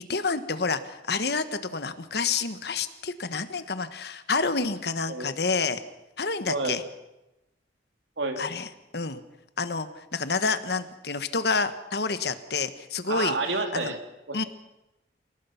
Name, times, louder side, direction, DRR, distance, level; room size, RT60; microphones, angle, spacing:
voice 1, 0.1-5.8 6.2-6.8 8.4-8.7 8.9-9.2 9.6-13.4 13.7-13.9 14.3-14.4, left 4 dB, 60° left, 11 dB, 1.4 m, -28 dB
voice 2, 6.5-6.8 8.2-8.4 13.1-14.0 14.3-14.5, right 3 dB, 80° right, 5 dB, 2.9 m, -29 dB
28.5 x 18.0 x 5.9 m, 0.95 s
head